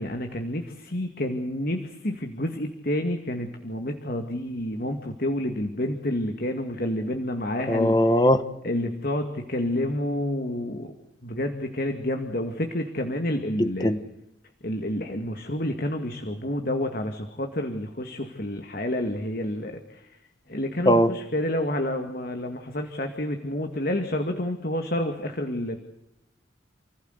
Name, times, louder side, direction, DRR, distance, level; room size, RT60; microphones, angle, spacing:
voice 1, 0.0-7.9 8.6-10.9 11.2-13.9 14.6-20.2 20.5-25.8, left 1 dB, 50° left, 5 dB, 2.2 m, -29 dB
voice 2, 7.7-8.4 13.6-14.0 20.8-21.1, equal, 20° left, 11 dB, 1.3 m, -20 dB
29.5 x 16.5 x 8.2 m, 0.85 s
head